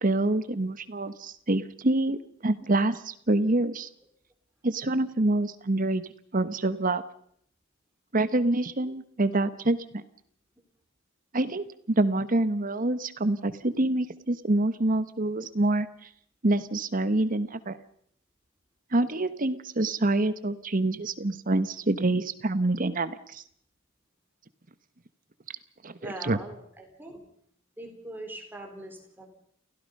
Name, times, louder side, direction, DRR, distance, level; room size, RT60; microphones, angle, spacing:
voice 1, 0.0-2.2 2.4-3.9 4.6-6.0 6.3-7.0 8.1-10.0 11.3-15.9 16.4-17.8 18.9-23.4 25.8-26.4, right 2 dB, 40° right, 13 dB, 1.1 m, -26 dB
voice 2, 26.0-27.2 27.8-29.3, right 1 dB, 10° right, 2 dB, 4.1 m, -42 dB
29.5 x 16.0 x 5.5 m, 0.65 s
head